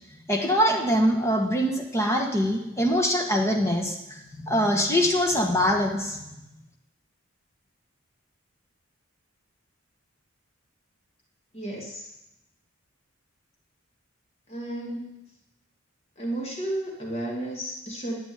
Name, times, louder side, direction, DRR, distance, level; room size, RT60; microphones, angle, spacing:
voice 1, 0.3-6.4, equal, 15° left, 2 dB, 1.5 m, -24 dB
voice 2, 11.5-12.1 14.5-15.2 16.2-18.2, right 1 dB, 30° left, -1 dB, 2.4 m, -33 dB
11.0 x 7.5 x 9.4 m, 0.92 s
head